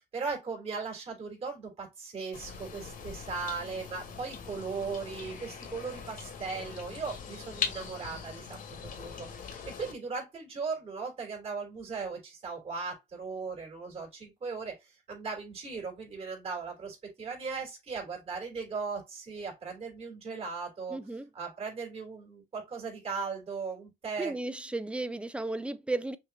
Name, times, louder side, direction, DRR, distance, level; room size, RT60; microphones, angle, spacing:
voice 1, 0.1-1.7 2.1-8.4 9.0-9.1 9.8-14.1 14.4-14.7 15.1-21.0 21.4-24.3, right 4 dB, 40° right, 3.1 m, -37 dB
sound 1, 2.3-9.9, left 6 dB, 65° left, 1.7 m, -41 dB
voice 2, 20.9-21.3 24.2-26.2, right 2 dB, 5° right, 0.5 m, -34 dB
5.9 x 2.9 x 2.3 m
cardioid pair, 120°, 15 cm